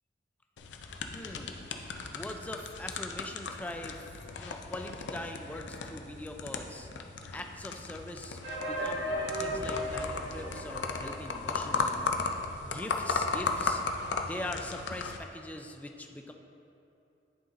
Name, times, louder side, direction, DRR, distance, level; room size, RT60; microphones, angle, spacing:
sound 1, 0.6-15.2, left 4 dB, 90° left, 0.4 m, -36 dB
voice 1, 1.1-1.6 2.1-6.9 7.3-8.4 8.7-12.1 12.6-13.8 14.2-16.3, left 1 dB, 10° left, 3 dB, 0.4 m, -42 dB
sound 2, 8.4-12.2 12.4-12.5 12.8-12.9 13.4-13.5, equal, 75° right, 1.2 m, -36 dB
10.5 x 4.0 x 2.5 m, 2.8 s
head